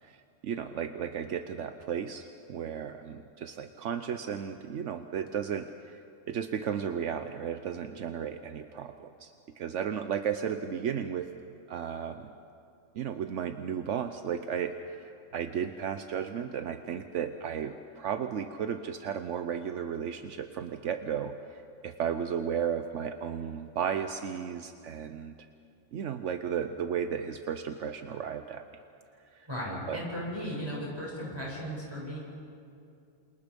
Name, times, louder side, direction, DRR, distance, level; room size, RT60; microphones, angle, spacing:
voice 1, 0.0-6.0 6.3-11.3 11.7-12.3 12.9-25.3 25.9-28.6 29.3-29.5 29.9-30.0, right 8 dB, 75° right, 8 dB, 1.1 m, -34 dB
voice 2, 29.5-32.2, equal, 20° right, -5 dB, 7.9 m, -36 dB
28.0 x 27.5 x 5.2 m, 2.5 s
omnidirectional pair, 1.3 m